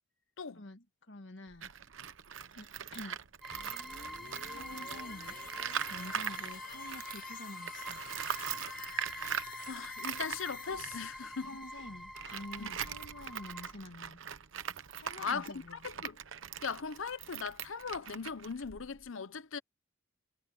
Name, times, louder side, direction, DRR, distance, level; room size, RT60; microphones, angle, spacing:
voice 1, 0.5-1.7 2.5-3.2 4.5-5.4 5.9-8.0 11.4-14.2 15.0-15.8, left 1 dB, 65° left, 1.7 m, -48 dB
Tools, 1.5-7.3 7.6-19.1, right 8 dB, 80° right, 0.9 m, -41 dB
sound 1, 3.4-13.7, equal, ahead, 0.8 m, -46 dB
sound 2, 3.5-13.2 13.5-13.6, left 7 dB, 45° left, 1.2 m, -51 dB
voice 2, 9.6-11.6 12.6-12.8 15.2-16.2 16.6-19.6, left 5 dB, 90° left, 0.8 m, -39 dB
head